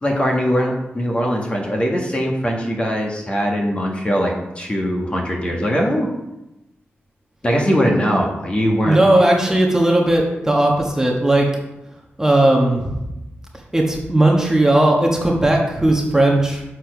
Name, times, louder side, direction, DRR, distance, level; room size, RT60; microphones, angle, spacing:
voice 1, 0.0-6.1 7.4-9.0 9.4-9.5, equal, 25° left, -1 dB, 1.5 m, -21 dB
voice 2, 8.8-11.5 12.2-13.0 13.7-16.6, right 1 dB, 15° right, -1 dB, 1.3 m, -16 dB
7.2 x 4.5 x 5.8 m, 0.95 s
wide cardioid pair, 95°, 4 cm